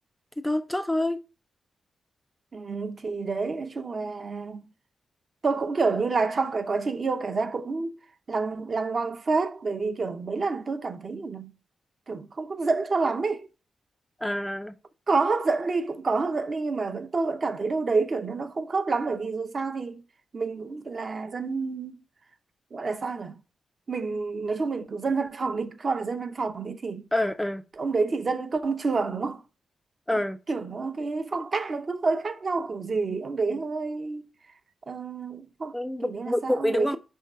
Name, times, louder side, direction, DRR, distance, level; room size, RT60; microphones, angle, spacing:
voice 1, 0.4-1.2 14.2-14.8 27.1-27.6 30.1-30.4 35.7-37.0, left 1 dB, 5° left, 0.4 m, -27 dB
voice 2, 2.5-4.7 5.4-8.0 8.3-11.5 12.1-13.5 15.1-20.0 20.3-22.0 22.7-23.4 23.9-27.0 27.8-29.4 30.5-34.3 34.9-35.8 36.0-37.0, right 4 dB, 35° right, 0.6 m, -28 dB
5.3 x 3.6 x 5.4 m
wide cardioid pair, 165°, 0 cm